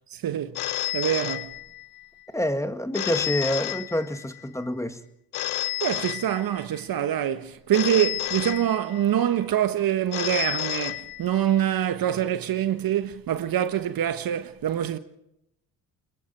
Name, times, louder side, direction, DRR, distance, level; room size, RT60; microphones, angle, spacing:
voice 1, 0.1-0.6 0.9-1.5 5.8-15.0, right 11 dB, 55° right, 1.2 m, -25 dB
Telephone, 0.6-2.1 2.9-4.4 5.3-6.8 7.7-9.2 10.1-11.6, left 16 dB, 60° left, 0.8 m, -31 dB
voice 2, 2.3-5.0, left 1 dB, 5° left, 2.0 m, -27 dB
26.5 x 21.5 x 4.5 m
hypercardioid pair, 60°, 43 cm